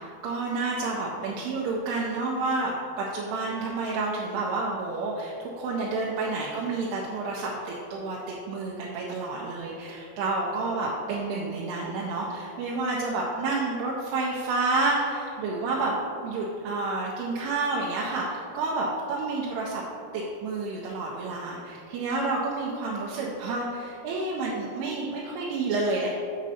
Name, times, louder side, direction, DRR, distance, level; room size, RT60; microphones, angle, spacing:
voice 1, 0.0-16.0 16.2-19.8 20.1-26.1, right 3 dB, 90° right, -3 dB, 2.6 m, -29 dB
6.6 x 6.1 x 2.7 m, 2.7 s
omnidirectional pair, 4.6 m